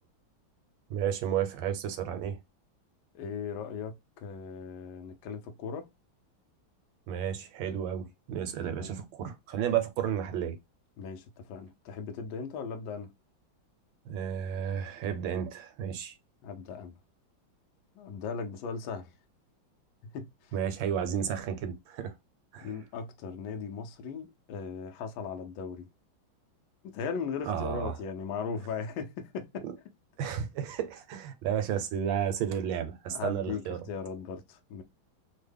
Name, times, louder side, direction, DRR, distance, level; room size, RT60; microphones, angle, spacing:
voice 1, 0.9-2.4 7.1-10.6 14.0-16.1 20.5-22.1 22.5-22.7 27.4-27.9 30.2-33.8, right 9 dB, 80° right, 1.4 m, -32 dB
voice 2, 3.1-5.9 8.8-9.0 9.6-9.8 11.0-13.1 16.4-17.0 17.9-19.1 20.1-20.5 22.6-25.9 26.8-29.6 33.1-34.8, left 5 dB, 80° left, 1.4 m, -38 dB
3.6 x 2.1 x 3.3 m
omnidirectional pair, 2.2 m